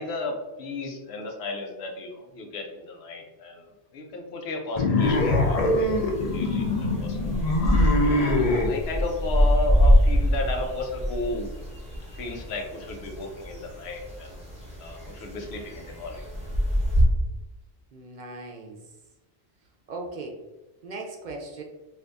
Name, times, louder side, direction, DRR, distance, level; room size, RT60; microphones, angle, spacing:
voice 1, 0.0-3.7 3.9-5.9 6.2-7.2 8.0-11.5 12.1-14.4 14.8-16.2, left 2 dB, 90° left, 3 dB, 0.9 m, -34 dB
sound 1, 4.8-8.7, left 2 dB, 50° left, 0.5 m, -24 dB
sound 2, 5.0-17.0, equal, 5° right, 0.8 m, -25 dB
voice 2, 17.9-18.8 19.9-20.4 20.8-21.6, right 2 dB, 55° right, 1 dB, 0.6 m, -38 dB
2.6 x 2.6 x 3.3 m, 1.1 s
omnidirectional pair, 1.1 m